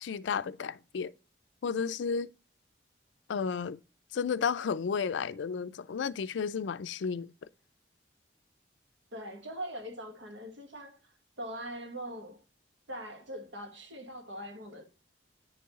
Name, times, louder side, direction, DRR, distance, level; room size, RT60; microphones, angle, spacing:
voice 1, 0.0-1.1 1.6-2.3 3.3-3.8 4.1-7.3, left 6 dB, 80° left, 0.4 m, -32 dB
voice 2, 9.1-12.4 12.9-14.8, equal, 90° right, 1.5 m, -42 dB
9.7 x 4.6 x 3.0 m
head